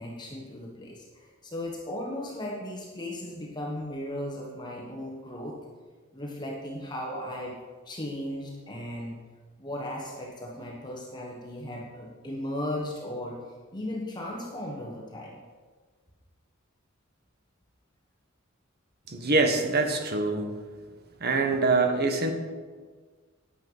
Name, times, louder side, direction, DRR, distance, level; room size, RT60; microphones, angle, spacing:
voice 1, 0.0-5.6 6.1-7.6 7.8-9.2 9.6-13.4 13.7-15.4, left 1 dB, 20° left, -2 dB, 1.3 m, -36 dB
voice 2, 19.1-20.5 21.2-22.3, right 3 dB, 50° right, 6 dB, 1.2 m, -24 dB
9.9 x 9.0 x 5.5 m, 1.5 s
head